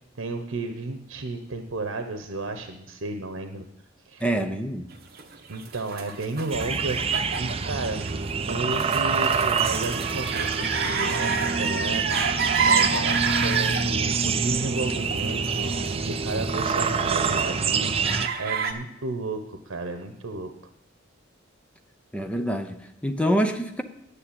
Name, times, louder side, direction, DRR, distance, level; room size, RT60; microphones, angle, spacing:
voice 1, 0.2-3.6 4.0-4.2 5.5-8.0 8.5-12.2 12.6-20.5, right 2 dB, 90° right, 0.9 m, -33 dB
voice 2, 4.2-4.9 22.1-23.8, equal, 5° left, 0.7 m, -26 dB
sound 1, 5.2-18.7, right 5 dB, 50° right, 1.1 m, -30 dB
sound 2, 6.5-18.3, right 5 dB, 30° right, 0.5 m, -26 dB
9.9 x 6.7 x 8.7 m
head